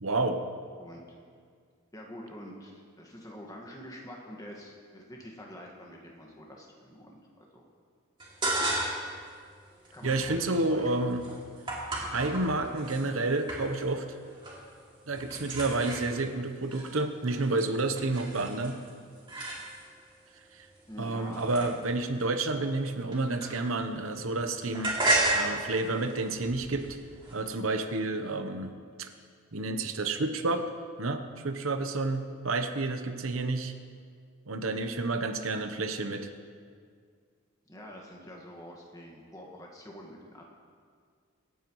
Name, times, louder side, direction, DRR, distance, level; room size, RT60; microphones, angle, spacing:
voice 1, 0.0-0.4 10.0-11.3 12.1-14.0 15.1-18.8 20.5-20.6 21.0-25.0 25.3-26.9 27.3-28.7 29.0-29.1 29.5-30.7 31.0-33.7 34.5-36.3, right 2 dB, 80° right, 7 dB, 0.9 m, -30 dB
voice 2, 0.8-1.2 1.9-7.6 9.9-11.0 20.9-21.7 37.7-40.4, equal, 15° left, -1 dB, 1.7 m, -46 dB
sound 1, 8.2-9.2 9.5-13.0 13.5-14.0 14.2-14.7 15.0-20.0 20.7-23.9 24.2-27.4, right 2 dB, 25° right, 2.5 m, -34 dB
25.5 x 9.3 x 3.1 m, 2.1 s
head